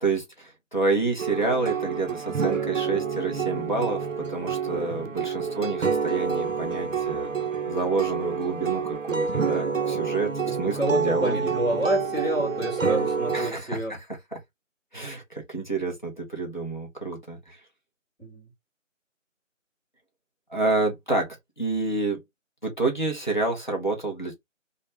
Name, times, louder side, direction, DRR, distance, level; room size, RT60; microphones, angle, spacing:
voice 1, 0.0-7.3 7.6-11.5 13.3-14.0 14.3-14.4 14.9-17.6 20.5-21.3 21.6-22.2 22.6-24.3, right 3 dB, 35° left, 0.8 m, -28 dB
sound 1, 1.2-13.5, right 6 dB, 75° right, 0.6 m, -28 dB
voice 2, 10.5-13.9 18.2-18.5, right 1 dB, ahead, 1.1 m, -29 dB
2.4 x 2.2 x 3.2 m
figure-of-eight pair, 175°, 39 cm